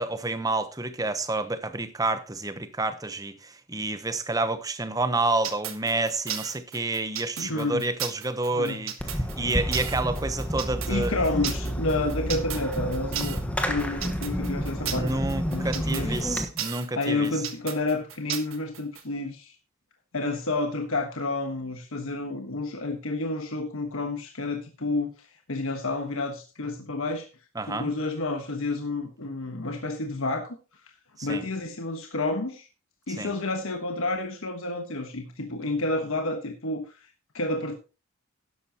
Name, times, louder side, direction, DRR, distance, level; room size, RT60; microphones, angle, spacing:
voice 1, 0.0-11.1 14.9-17.3 27.6-27.9 31.2-31.4 33.2-33.3, right 2 dB, 15° right, 0.9 m, -29 dB
sound 1, 5.4-19.0, right 10 dB, 70° right, 1.3 m, -35 dB
voice 2, 7.4-7.9 8.5-8.8 10.9-16.2 17.0-19.5 20.1-27.3 27.7-30.6 31.2-32.7 33.1-37.7, left 2 dB, 70° left, 1.3 m, -30 dB
Fireworks, 9.0-16.4, equal, 5° left, 1.2 m, -30 dB
12.5 x 10.5 x 2.9 m
head